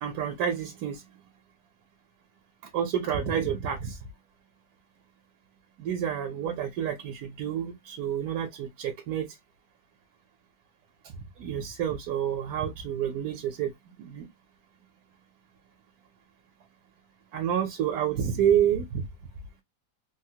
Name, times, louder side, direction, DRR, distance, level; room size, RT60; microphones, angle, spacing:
voice 1, 0.0-1.0 2.7-4.0 5.8-9.3 11.0-11.1 11.4-13.7 14.0-14.3 17.3-19.0, right 9 dB, 70° right, 1.1 m, -29 dB
3.5 x 2.0 x 2.7 m
omnidirectional pair, 1.8 m